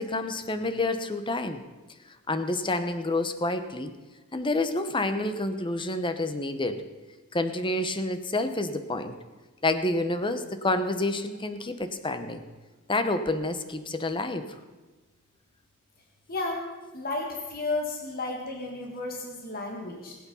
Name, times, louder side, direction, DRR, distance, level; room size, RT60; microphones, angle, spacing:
voice 1, 0.0-1.6 2.3-3.9 4.3-6.8 7.3-9.1 9.6-12.4 12.9-14.4, left 2 dB, 20° left, 10 dB, 0.9 m, -28 dB
voice 2, 16.3-16.6 16.9-20.2, left 2 dB, 40° left, 0 dB, 2.0 m, -33 dB
20.0 x 8.8 x 5.6 m, 1.2 s
head